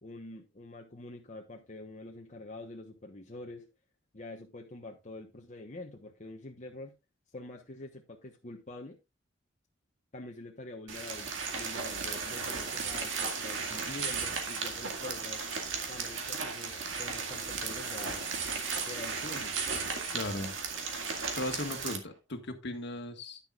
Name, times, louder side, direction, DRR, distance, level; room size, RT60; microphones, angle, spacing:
voice 1, 0.0-3.7 4.1-6.9 7.3-9.0 10.1-15.5 15.9-18.3 18.8-19.5, left 2 dB, 40° left, 1.1 m, -46 dB
sound 1, 10.9-22.0, right 5 dB, 75° right, 2.1 m, -35 dB
voice 2, 20.1-20.5 21.3-23.4, left 1 dB, 65° left, 1.8 m, -37 dB
10.5 x 10.0 x 2.4 m
head